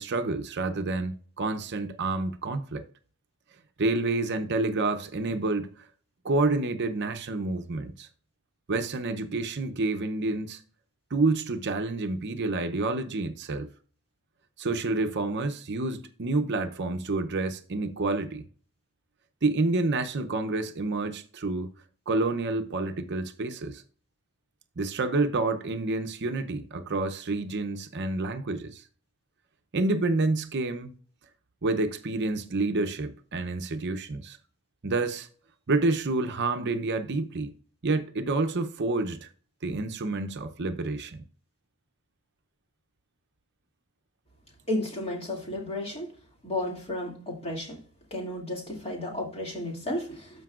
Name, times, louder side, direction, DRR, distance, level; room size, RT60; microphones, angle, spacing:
voice 1, 0.0-2.9 3.8-5.8 6.2-8.1 8.7-10.6 11.1-13.7 14.6-18.5 19.4-21.7 22.1-23.8 24.8-28.8 29.7-30.9 31.6-34.4 34.8-35.3 35.7-37.5 37.8-39.3 39.6-41.2, right 3 dB, 50° right, 0.7 m, -28 dB
voice 2, 44.7-46.1 46.4-47.8 48.1-50.4, left 1 dB, 30° left, 2.4 m, -33 dB
13.5 x 5.2 x 2.4 m
head